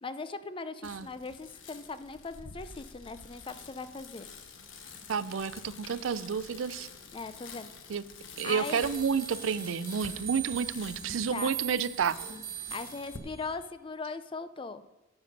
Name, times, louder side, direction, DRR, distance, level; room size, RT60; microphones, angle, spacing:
voice 1, 0.0-4.3 7.1-7.7 8.4-8.9 11.3-11.5 12.7-14.8, left 4 dB, 25° left, 12 dB, 0.5 m, -39 dB
Bicycle, 0.8-13.2, left 4 dB, 75° left, 1.1 m, -48 dB
voice 2, 5.1-6.9 7.9-8.0 8.4-12.2, right 6 dB, 80° right, 16 dB, 0.4 m, -30 dB
sound 1, 8.4-13.6, right 10 dB, 50° right, 3.0 m, -41 dB
11.5 x 7.2 x 5.2 m, 1.0 s
head